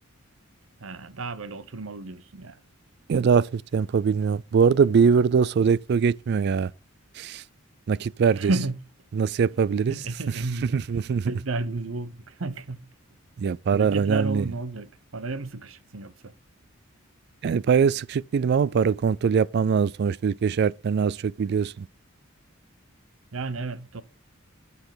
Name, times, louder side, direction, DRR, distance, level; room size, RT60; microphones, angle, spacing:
voice 1, 0.8-2.6 8.3-8.7 9.8-10.8 11.3-12.8 13.4-16.3 23.3-24.0, right 3 dB, 75° right, 0.8 m, -32 dB
voice 2, 3.1-6.7 7.2-7.4 7.9-8.5 9.1-9.9 10.6-11.3 13.4-14.5 17.4-21.9, right 6 dB, 55° right, 0.3 m, -22 dB
9.6 x 6.9 x 3.9 m
head